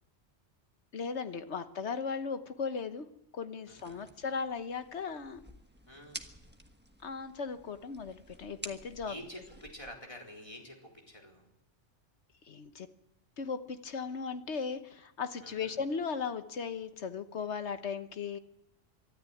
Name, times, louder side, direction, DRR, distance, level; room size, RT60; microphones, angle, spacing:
voice 1, 0.9-3.1 3.3-5.4 7.0-9.1 12.5-12.9 13.4-18.4, left 5 dB, 70° left, 10 dB, 1.4 m, -37 dB
voice 2, 3.7-4.1 5.9-6.2 9.0-11.5 15.4-15.8, left 1 dB, 25° left, 0 dB, 4.3 m, -48 dB
sound 1, 3.7-9.9, right 1 dB, 10° right, 1.3 m, -50 dB
24.0 x 13.0 x 9.2 m, 0.86 s
omnidirectional pair, 1.2 m